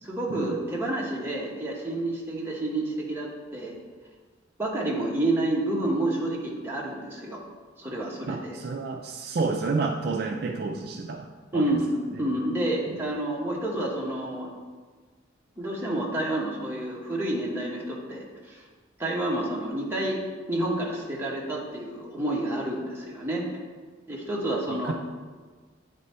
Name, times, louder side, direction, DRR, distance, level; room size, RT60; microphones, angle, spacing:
voice 1, 0.0-3.7 4.6-7.4 7.8-8.6 11.5-11.9 12.2-14.5 15.6-18.6 19.0-20.2 20.5-23.4 24.1-24.9, right 1 dB, 10° right, -4 dB, 1.0 m, -29 dB
voice 2, 8.3-11.8 12.1-12.3 12.9-13.0 24.7-24.9, right 4 dB, 55° right, 3 dB, 0.4 m, -30 dB
8.7 x 3.4 x 4.3 m, 1.4 s
head